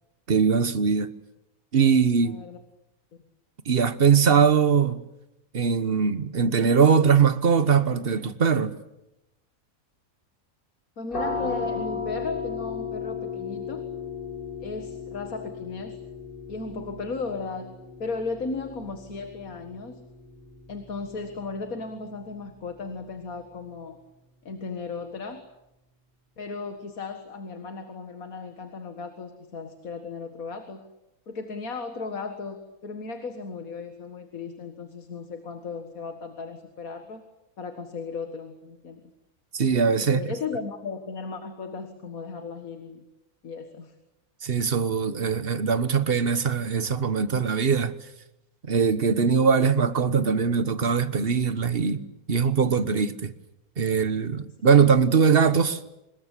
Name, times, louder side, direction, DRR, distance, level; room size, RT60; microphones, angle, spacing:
voice 1, 0.3-1.1 1.7-2.4 3.7-5.0 5.5-8.7 39.5-40.2 44.4-47.9 48.7-52.0 52.3-53.3 53.8-55.8, right 6 dB, 40° right, 1.4 m, -21 dB
voice 2, 2.2-2.6 11.0-13.9 14.6-16.0 16.5-20.1 20.7-24.0 24.4-25.5 26.4-30.9 31.3-37.3 37.6-39.0 40.0-43.0 43.4-43.9, left 4 dB, 70° left, 2.2 m, -36 dB
sound 1, 11.1-22.6, left 5 dB, 35° left, 2.5 m, -36 dB
26.0 x 21.5 x 8.4 m
omnidirectional pair, 1.5 m